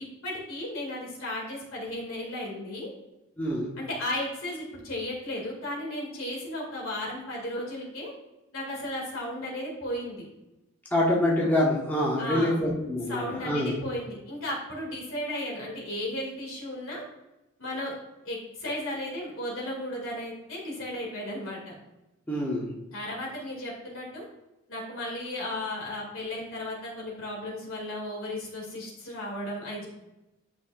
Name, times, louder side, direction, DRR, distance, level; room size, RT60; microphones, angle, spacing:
voice 1, 0.0-2.9 3.8-8.1 8.5-10.2 12.2-12.6 13.1-17.0 17.6-17.9 18.2-21.7 22.9-24.3 24.7-29.9, left 1 dB, 75° left, -2 dB, 2.3 m, -35 dB
voice 2, 3.4-3.7 10.9-13.8 22.3-22.7, left 1 dB, 10° left, -5 dB, 1.2 m, -26 dB
9.5 x 5.7 x 2.4 m, 0.97 s
head